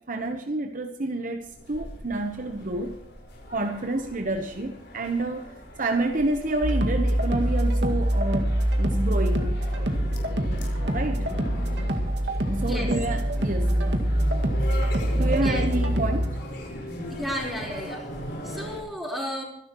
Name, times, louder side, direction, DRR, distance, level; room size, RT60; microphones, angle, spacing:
voice 1, 0.1-2.9 3.5-5.5 5.8-9.9 10.5-11.3 12.5-14.0 15.1-16.4, right 2 dB, 40° right, 5 dB, 1.0 m, -29 dB
sound 1, 1.5-18.8, equal, 55° left, 4.9 m, -38 dB
sound 2, 6.6-16.3, right 1 dB, 60° right, 2.0 m, -24 dB
voice 2, 17.1-18.1 18.4-19.4, equal, ahead, -2 dB, 4.1 m, -32 dB
25.5 x 11.5 x 3.1 m, 0.79 s
head